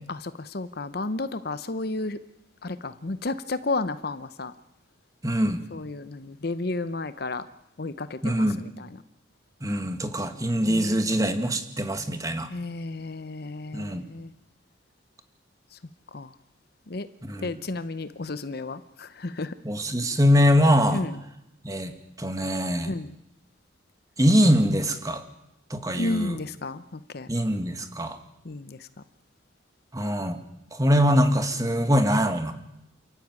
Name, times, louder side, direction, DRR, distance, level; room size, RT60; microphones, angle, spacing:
voice 1, 0.1-2.2 2.6-4.5 5.7-7.4 7.8-8.9 10.7-11.3 12.5-14.3 16.1-16.3 16.9-17.1 17.4-19.5 20.9-21.2 22.9-23.1 25.9-27.3 28.4-28.8, left 2 dB, 50° left, 13 dB, 0.8 m, -32 dB
voice 2, 5.2-5.6 8.2-8.6 9.6-12.5 13.7-14.1 17.2-17.5 19.6-21.0 21.6-22.9 24.2-25.2 25.7-26.4 27.3-28.2 29.9-30.4 30.7-32.5, equal, 15° right, 8 dB, 1.8 m, -23 dB
28.5 x 14.0 x 9.6 m, 0.90 s
head